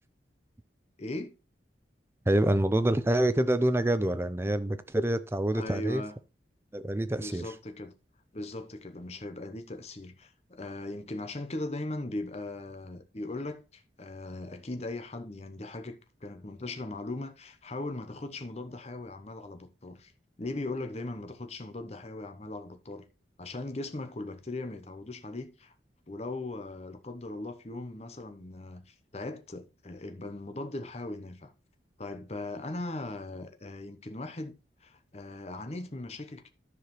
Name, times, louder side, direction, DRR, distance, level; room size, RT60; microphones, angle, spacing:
voice 1, 1.0-1.3 5.5-6.1 7.1-7.9 8.3-20.1 20.4-23.0 23.4-25.7 26.1-31.5 32.0-34.5 34.8-36.5, left 2 dB, 35° left, 0.8 m, -39 dB
voice 2, 2.3-6.0 6.7-7.5, right 1 dB, 15° right, 0.5 m, -26 dB
13.5 x 4.8 x 3.1 m
head